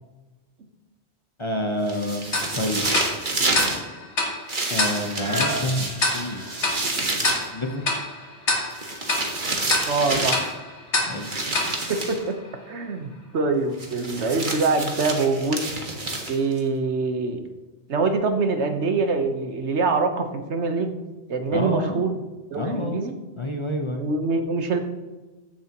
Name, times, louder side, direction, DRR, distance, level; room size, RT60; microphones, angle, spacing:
voice 1, 1.4-2.9 4.7-6.5 7.5-7.9 11.0-11.3 21.5-22.0 22.5-23.0 23.4-24.0, left 1 dB, 30° left, 4 dB, 0.8 m, -28 dB
sound 1, 1.9-3.8 4.5-7.5 8.7-10.5 11.2-12.2 13.8-16.6, right 2 dB, 45° right, 1.6 m, -28 dB
Tick-tock, 2.3-12.8, left 2 dB, 85° left, 2.1 m, -28 dB
sound 2, 5.0-10.6 11.2-11.3, equal, 20° right, 1.0 m, -38 dB
voice 2, 9.9-10.4 11.9-12.3 12.7-15.6 16.3-17.4 17.9-21.0 21.3-22.2 22.5-23.1 24.0-24.8, right 3 dB, 80° right, 6 dB, 1.3 m, -24 dB
14.5 x 7.4 x 3.0 m, 1.2 s
omnidirectional pair, 1.1 m